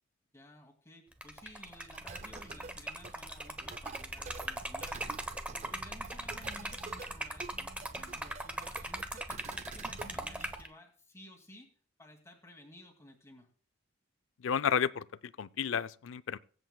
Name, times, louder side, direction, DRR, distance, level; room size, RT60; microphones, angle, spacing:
voice 1, 0.3-5.0 5.7-13.5, left 1 dB, 15° left, 2.1 m, -55 dB
Liquid, 1.1-10.7, right 1 dB, 5° right, 0.8 m, -40 dB
sound 1, 1.9-10.5, right 4 dB, 30° right, 0.4 m, -49 dB
voice 2, 14.4-16.4, left 7 dB, 60° left, 0.4 m, -32 dB
23.0 x 8.1 x 2.2 m
head